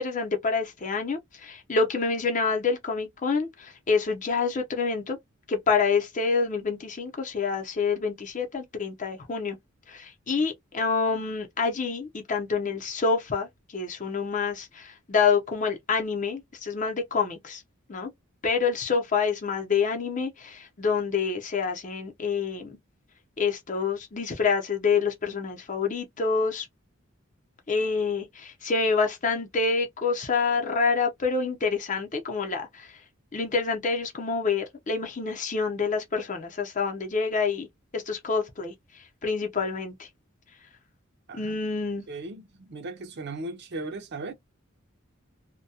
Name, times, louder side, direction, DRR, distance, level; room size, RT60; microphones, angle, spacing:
voice 1, 0.0-5.2 5.5-9.6 9.9-17.6 17.9-18.1 18.4-22.8 23.4-26.7 27.7-33.0 33.3-37.7 37.9-40.1 41.3-42.1, left 5 dB, 40° left, 0.6 m, -27 dB
voice 2, 42.1-44.3, right 2 dB, 50° right, 0.5 m, -37 dB
2.2 x 2.2 x 2.7 m
head